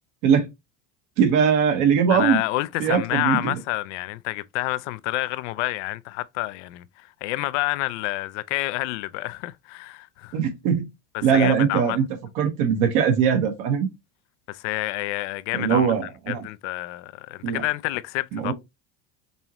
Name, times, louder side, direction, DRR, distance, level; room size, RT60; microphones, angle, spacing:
voice 1, 1.2-2.4 2.8-3.5 10.3-10.8 11.2-12.0 12.3-13.9 15.5-16.4 17.4-17.6 18.3-18.5, right 7 dB, 75° right, 1.3 m, -21 dB
voice 2, 2.1-6.8 7.2-10.4 11.1-12.0 14.5-15.9 16.3-18.5, left 19 dB, 85° left, 0.5 m, -28 dB
5.5 x 3.0 x 2.9 m
supercardioid pair, 125°, 35 cm